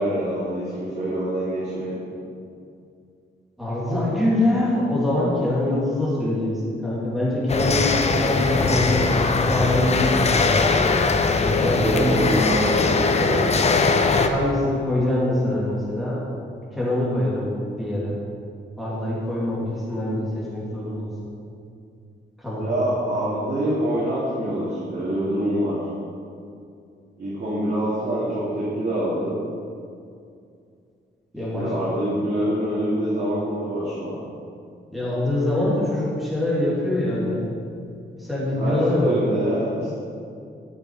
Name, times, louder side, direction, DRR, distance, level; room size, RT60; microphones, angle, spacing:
voice 1, 0.0-2.0 8.5-8.8 11.8-13.5 22.6-25.8 27.2-29.3 31.5-34.1 38.5-39.9, right 1 dB, 60° right, -9 dB, 2.8 m, -25 dB
voice 2, 3.6-9.1 9.3-10.6 11.4-12.2 14.3-16.2 16.7-18.2 18.8-21.1 22.4-22.8 31.3-31.7 34.9-37.5 38.2-39.2, left 1 dB, ahead, -7 dB, 2.9 m, -24 dB
sound 1, 7.5-14.3, left 4 dB, 35° left, 0.7 m, -20 dB
13.0 x 6.7 x 5.0 m, 2.4 s
wide cardioid pair, 130°, 18 cm